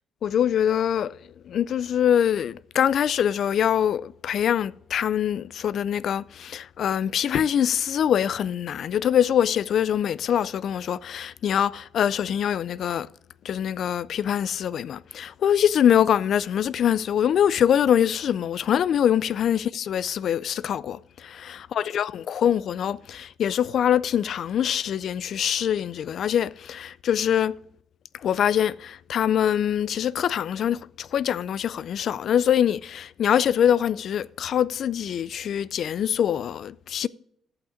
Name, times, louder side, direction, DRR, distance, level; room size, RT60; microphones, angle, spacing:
voice 1, 0.2-1.2 1.5-13.1 13.4-27.6 28.2-37.1, left 9 dB, 65° left, 0.3 m, -24 dB
14.0 x 5.8 x 5.1 m
cardioid pair, 90°, 0 cm